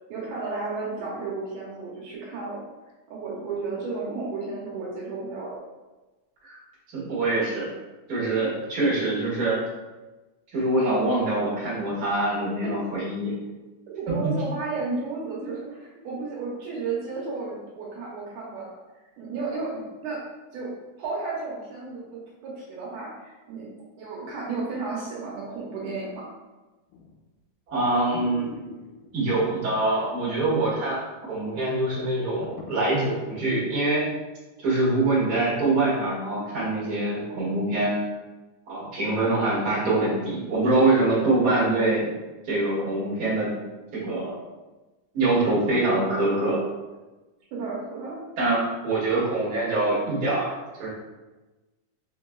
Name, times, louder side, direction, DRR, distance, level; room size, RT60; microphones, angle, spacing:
voice 1, 0.1-2.6 3.1-5.6 12.6-12.7 14.0-18.7 19.2-20.2 20.5-23.7 24.0-26.2 47.5-48.2, right 3 dB, 75° right, -5 dB, 2.2 m, -33 dB
voice 2, 6.9-7.7 8.1-9.6 10.5-13.3 14.1-14.3 27.7-28.6 29.1-34.1 34.6-38.1 38.7-42.1 42.4-43.5 43.9-44.4 45.1-46.6 48.4-50.9, right 2 dB, 40° right, -8 dB, 1.5 m, -24 dB
sound 1, 26.9-27.3 27.7-27.8 28.1-29.1 29.8-30.5 30.8-30.9 31.4-31.5 31.7-33.6 34.0-34.1, left 3 dB, 90° left, 2.2 m, -41 dB
4.4 x 3.8 x 2.3 m, 1.1 s
omnidirectional pair, 3.8 m